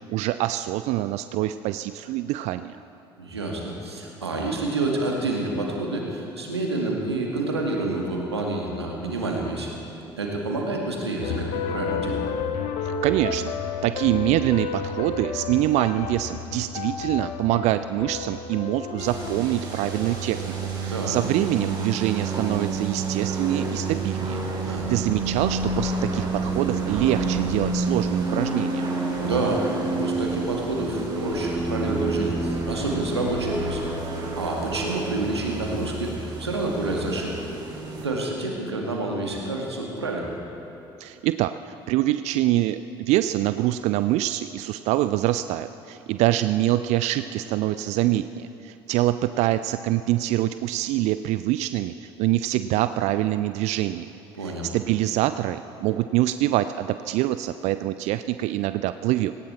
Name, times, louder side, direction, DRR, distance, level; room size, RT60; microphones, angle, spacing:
voice 1, 0.1-2.8 12.8-28.9 41.0-59.3, right 14 dB, 55° right, 12 dB, 0.4 m, -25 dB
voice 2, 3.2-9.7 10.2-12.2 20.9-21.1 24.7-25.0 29.2-37.3 38.0-40.3 54.3-54.7, right 2 dB, 85° right, -1 dB, 2.0 m, -28 dB
sound 1, 11.2-21.4, left 6 dB, 60° left, 1.0 m, -32 dB
sound 2, 19.0-38.1, right 3 dB, 30° right, 4.8 m, -29 dB
18.0 x 18.0 x 4.4 m, 2.9 s
figure-of-eight pair, 55°, 14 cm